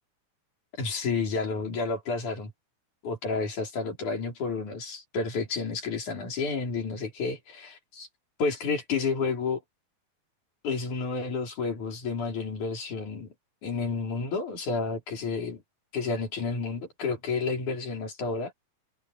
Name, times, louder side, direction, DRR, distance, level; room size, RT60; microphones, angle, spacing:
voice 1, 0.8-2.5 3.0-8.1 8.4-9.6 10.6-13.3 13.6-15.6 15.9-18.5, left 4 dB, 55° left, 6.6 m, -30 dB
omnidirectional pair, 4.3 m